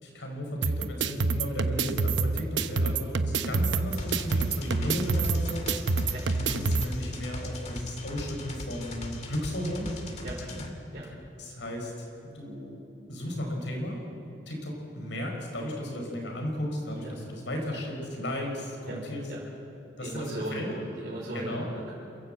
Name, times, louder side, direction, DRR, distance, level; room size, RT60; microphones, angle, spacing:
voice 1, 0.0-5.7 6.0-9.9 10.5-10.7 11.4-12.1 12.3-12.8 13.1-14.0 14.5-19.3 20.0-20.7 21.3-21.7, left 1 dB, 85° left, 1 dB, 5.0 m, -35 dB
sound 1, 0.6-6.8, right 3 dB, 85° right, 0.8 m, -27 dB
sound 2, 4.0-10.7, left 1 dB, 40° left, 1.9 m, -39 dB
voice 2, 20.0-21.9, right 1 dB, 55° right, -6 dB, 3.8 m, -37 dB
27.5 x 12.5 x 7.9 m, 2.8 s
head